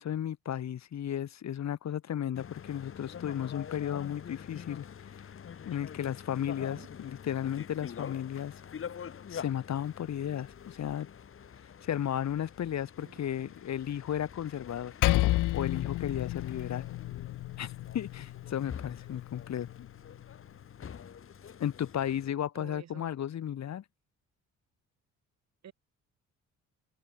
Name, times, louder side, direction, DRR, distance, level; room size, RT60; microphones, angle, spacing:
voice 1, 0.0-4.9 5.7-8.5 9.3-11.1 11.8-14.9 15.5-16.9 17.6-19.9 21.6-23.8, left 10 dB, 65° left, 3.4 m, -34 dB
sound 1, 2.3-22.3, left 8 dB, 45° left, 1.6 m, -46 dB
voice 2, 6.6-6.9 13.0-13.5 22.5-23.1 25.6-25.7, right 9 dB, 60° right, 5.2 m, -51 dB
Percussion, 15.0-19.8, left 17 dB, 90° left, 1.3 m, -31 dB
cardioid pair, 90°, 30 cm